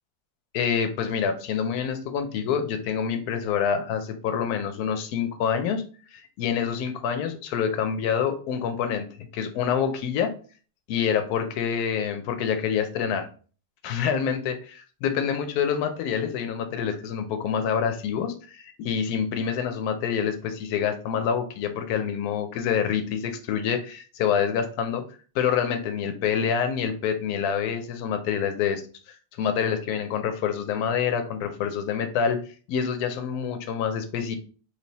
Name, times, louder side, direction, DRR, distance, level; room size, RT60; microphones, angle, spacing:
voice 1, 0.5-5.8 6.1-9.1 9.3-10.3 10.9-13.3 13.8-25.0 25.3-28.8 29.1-32.4 32.7-34.4, left 7 dB, 75° left, 8 dB, 1.1 m, -27 dB
3.3 x 2.9 x 4.0 m, 0.39 s
omnidirectional pair, 1.7 m